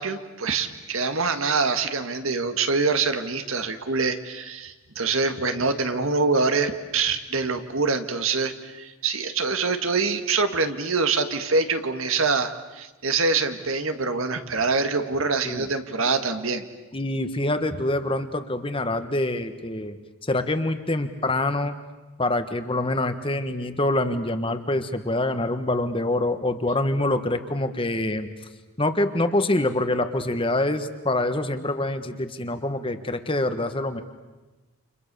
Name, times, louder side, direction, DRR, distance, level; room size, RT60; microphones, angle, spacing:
voice 1, 0.0-16.6, right 4 dB, 70° right, 8 dB, 1.8 m, -25 dB
voice 2, 16.9-20.0 20.3-21.7 22.2-28.3 28.8-34.0, left 2 dB, 25° left, 9 dB, 1.5 m, -25 dB
30.0 x 28.0 x 6.9 m, 1.2 s
head